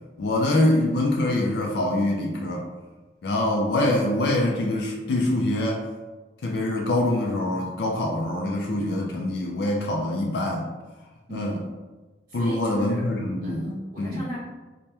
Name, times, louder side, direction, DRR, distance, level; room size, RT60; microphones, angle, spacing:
voice 1, 0.2-2.6 3.2-5.8 6.4-10.7 11.3-11.6 12.3-13.7 14.0-14.2, left 1 dB, 65° left, -1 dB, 0.4 m, -24 dB
voice 2, 12.3-14.4, equal, 50° right, -6 dB, 1.1 m, -37 dB
3.2 x 2.1 x 2.7 m, 1.2 s
head